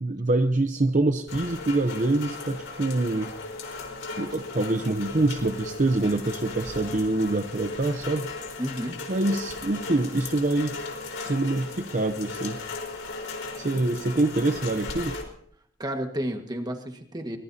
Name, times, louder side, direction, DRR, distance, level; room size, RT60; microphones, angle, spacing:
voice 1, 0.0-3.3 4.2-8.3 9.1-10.7 11.2-12.6 13.6-15.2, right 2 dB, 40° right, 7 dB, 0.7 m, -25 dB
Rain, 1.3-15.2, left 3 dB, 85° left, 4.3 m, -37 dB
voice 2, 8.6-9.0 15.8-17.4, equal, 20° right, 4 dB, 1.6 m, -31 dB
24.0 x 20.5 x 2.8 m, 0.63 s
head